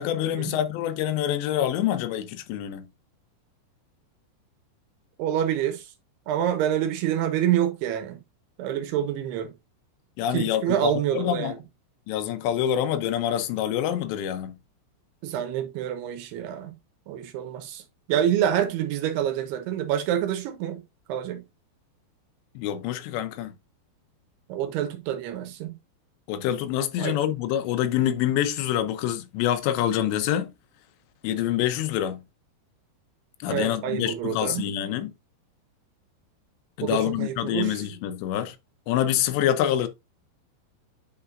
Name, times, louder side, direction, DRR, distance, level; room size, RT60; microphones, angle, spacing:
voice 1, 0.0-2.9 10.2-11.5 12.1-14.5 22.6-23.5 26.3-30.5 31.2-32.2 33.4-35.1 36.8-38.6 38.9-39.9, left 11 dB, 85° left, 2.9 m, -26 dB
voice 2, 5.2-5.9 6.3-8.2 8.6-9.5 10.3-11.5 15.2-16.7 17.1-17.8 18.1-20.8 21.1-21.4 24.5-25.7 27.0-27.2 33.5-34.7 36.8-37.8, right 10 dB, 75° right, 2.7 m, -27 dB
8.9 x 4.4 x 2.5 m
omnidirectional pair, 5.0 m